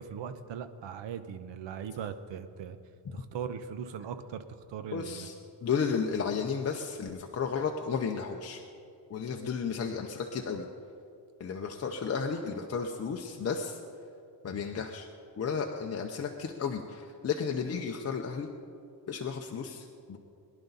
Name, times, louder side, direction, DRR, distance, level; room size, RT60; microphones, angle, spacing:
voice 1, 0.0-2.8 3.1-4.4 4.7-5.3, right 7 dB, 75° right, 10 dB, 1.0 m, -39 dB
voice 2, 4.9-5.3 5.6-8.6 9.1-10.7 11.4-13.8 14.4-15.1 15.4-18.5 19.1-20.2, left 6 dB, 35° left, 2 dB, 0.7 m, -33 dB
22.5 x 11.0 x 4.0 m, 2.5 s
cardioid pair, 155°, 44 cm